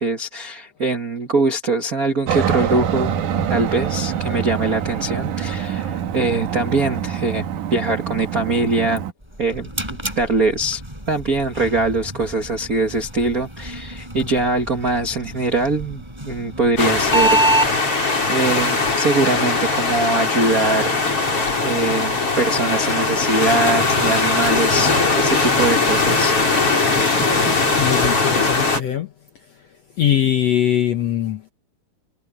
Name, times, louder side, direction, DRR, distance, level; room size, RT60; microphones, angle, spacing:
voice 1, 0.0-3.2 3.5-7.4 7.7-9.0 9.4-9.7 10.1-10.8 11.1-17.4 17.7-21.0 21.6-26.3, right 3 dB, 80° right, 0.7 m, -22 dB
Aircraft, 2.3-9.1, right 8 dB, 65° right, 2.5 m, -25 dB
sound 1, 9.2-17.7, right 1 dB, 5° right, 6.7 m, -27 dB
sound 2, 16.8-28.8, left 3 dB, 35° left, 6.5 m, -20 dB
voice 2, 27.8-29.1 30.0-31.5, left 10 dB, 70° left, 1.6 m, -21 dB
omnidirectional pair, 4.4 m